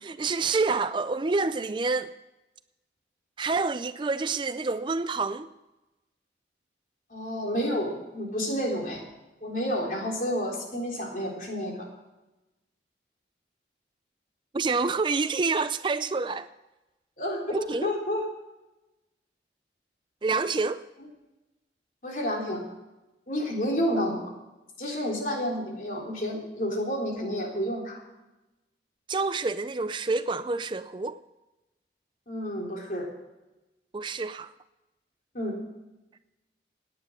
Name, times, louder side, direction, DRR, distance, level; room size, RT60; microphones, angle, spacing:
voice 1, 0.0-2.1 3.4-5.5 14.5-16.5 17.5-17.9 20.2-20.8 29.1-31.2 33.9-34.5, right 4 dB, 25° right, 0.4 m, -28 dB
voice 2, 7.1-9.0 9.4-11.9 17.2-18.2 22.0-22.6 23.3-24.3 24.8-28.0 32.3-33.1 35.3-35.6, equal, 50° left, 3.8 m, -30 dB
17.5 x 9.8 x 6.4 m
head